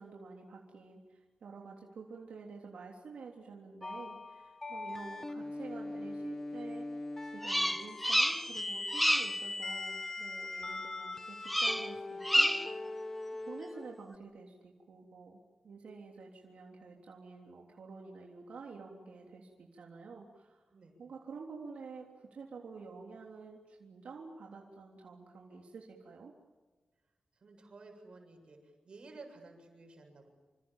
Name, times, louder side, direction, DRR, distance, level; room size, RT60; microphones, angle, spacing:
voice 1, 0.0-12.8 13.5-20.6 21.0-26.3, right 4 dB, 85° right, 0 dB, 3.4 m, -49 dB
sound 1, 3.8-14.0, left 2 dB, 20° left, 1.5 m, -41 dB
Bird vocalization bird call bird song, 7.4-8.6 8.9-9.4 11.5-11.9 12.2-12.8, equal, ahead, 0.8 m, -29 dB
voice 2, 27.4-28.6 28.8-30.3, right 3 dB, 50° right, 3 dB, 7.6 m, -53 dB
28.0 x 26.5 x 7.5 m, 1.3 s
wide cardioid pair, 160°, 2 cm